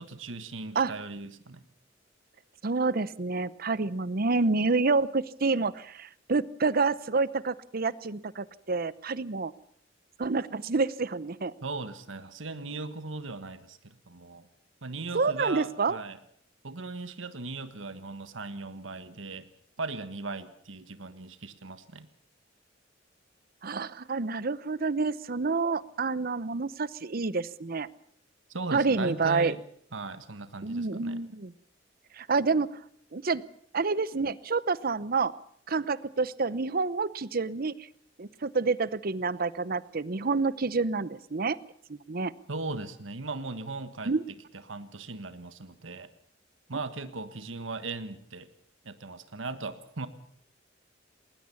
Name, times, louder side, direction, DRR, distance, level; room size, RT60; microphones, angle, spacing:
voice 1, 0.0-1.6 11.6-14.5 14.8-16.2 16.6-19.5 19.8-22.1 28.5-29.6 29.9-31.2 42.5-44.1 44.7-46.1 46.7-48.5 48.8-50.1, right 3 dB, 85° right, 11 dB, 1.4 m, -38 dB
voice 2, 2.6-9.5 10.2-11.5 15.1-16.0 23.6-27.9 28.7-29.5 30.6-31.5 32.1-32.8 33.1-33.4 33.7-35.3 35.7-37.7 38.2-41.6 41.9-42.3 44.0-44.2, right 4 dB, 50° right, 18 dB, 0.8 m, -28 dB
20.0 x 19.5 x 7.1 m, 0.62 s
head